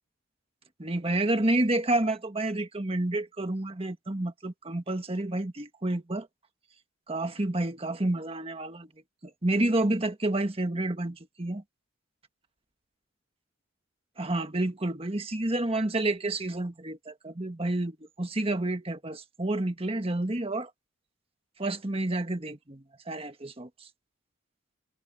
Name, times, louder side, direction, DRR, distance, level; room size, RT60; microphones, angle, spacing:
voice 1, 0.8-6.3 7.1-8.9 9.2-11.6 14.2-20.7 21.6-23.7, right 2 dB, 30° right, 1.5 m, -29 dB
head